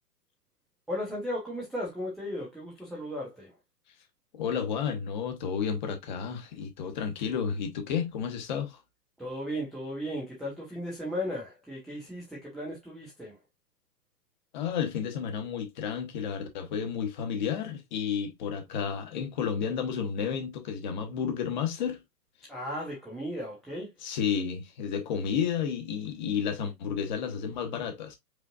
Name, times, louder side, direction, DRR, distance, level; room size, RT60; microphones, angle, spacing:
voice 1, 0.9-3.5 9.2-13.4 22.5-24.1, equal, ahead, 0.3 m, -36 dB
voice 2, 4.3-8.8 14.5-22.0 24.0-28.2, left 7 dB, 30° left, 0.9 m, -31 dB
5.0 x 3.9 x 2.3 m
hypercardioid pair, 150°, 49 cm